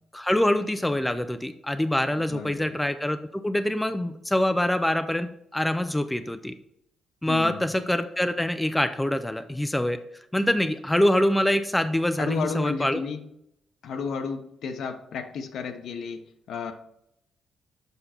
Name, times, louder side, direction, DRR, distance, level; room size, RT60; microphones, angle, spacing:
voice 1, 0.1-6.5 7.2-10.0 10.3-13.0, left 1 dB, 5° left, 8 dB, 0.4 m, -25 dB
voice 2, 2.1-2.8 7.3-7.6 12.2-13.2 13.8-16.7, left 5 dB, 70° left, 6 dB, 0.9 m, -33 dB
6.9 x 5.3 x 4.3 m, 0.77 s
cardioid pair, 115°, 0 cm